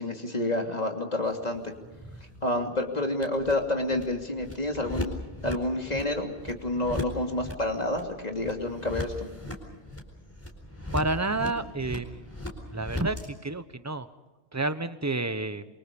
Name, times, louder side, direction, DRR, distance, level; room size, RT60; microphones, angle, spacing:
voice 1, 0.0-1.7 2.4-9.3, left 1 dB, 35° left, 3 dB, 3.1 m, -29 dB
sound 1, 1.2-13.3, left 1 dB, 10° left, 4.5 m, -39 dB
voice 2, 10.9-12.3 12.7-14.1 14.5-15.7, right 2 dB, 15° right, 12 dB, 1.0 m, -30 dB
28.5 x 24.0 x 5.4 m, 1.2 s
omnidirectional pair, 1.1 m